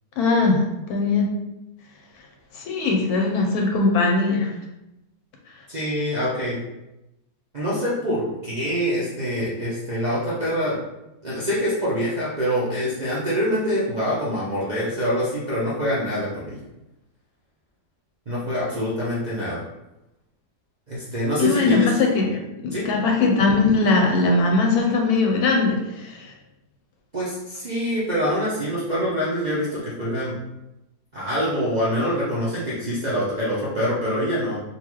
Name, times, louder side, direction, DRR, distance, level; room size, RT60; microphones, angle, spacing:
voice 1, 0.2-1.3 2.5-4.6 21.4-22.3 22.6-26.3, left 3 dB, 75° left, 1 dB, 1.1 m, -20 dB
voice 2, 5.7-6.6 7.5-10.8 11.2-16.6 18.3-19.6 20.9-21.9 22.7-22.9 27.1-30.4 31.1-34.6, equal, 45° right, -10 dB, 0.5 m, -25 dB
3.9 x 2.5 x 3.0 m, 0.93 s
omnidirectional pair, 1.7 m